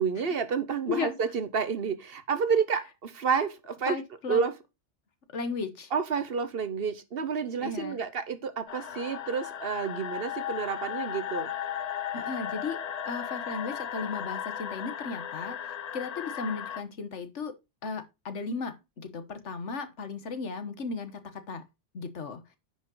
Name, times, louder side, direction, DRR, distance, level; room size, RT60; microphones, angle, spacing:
voice 1, 0.0-4.0 4.3-4.5 5.9-11.5, right 6 dB, 60° right, 1.1 m, -29 dB
voice 2, 3.9-4.4 5.3-5.9 7.6-8.0 12.1-12.8 13.0-15.6 15.9-17.6 17.8-21.6 21.9-22.4, left 4 dB, 85° left, 1.6 m, -35 dB
sound 1, 8.7-16.8, left 9 dB, 50° left, 0.5 m, -36 dB
9.8 x 5.5 x 3.9 m
omnidirectional pair, 1.2 m